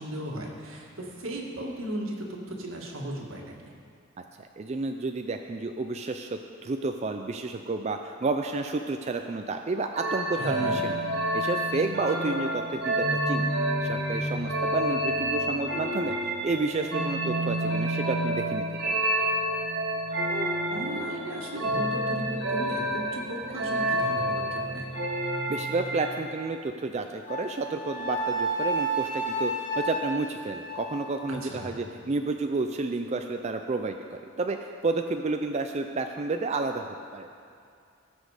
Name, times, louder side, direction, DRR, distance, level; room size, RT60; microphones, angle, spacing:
voice 1, 0.0-3.7 10.4-10.8 20.3-24.9 31.3-31.8, equal, 80° right, 0 dB, 1.8 m, -36 dB
voice 2, 4.4-11.0 11.3-13.5 13.8-16.1 16.4-19.1 25.5-36.9 37.1-37.3, right 3 dB, 30° right, 5 dB, 0.4 m, -31 dB
sound 1, 9.9-26.4, right 1 dB, 55° right, 1.4 m, -29 dB
Wind instrument woodwind instrument, 27.3-31.6, right 2 dB, 40° left, 1.5 m, -31 dB
18.5 x 6.2 x 4.9 m, 2.4 s
head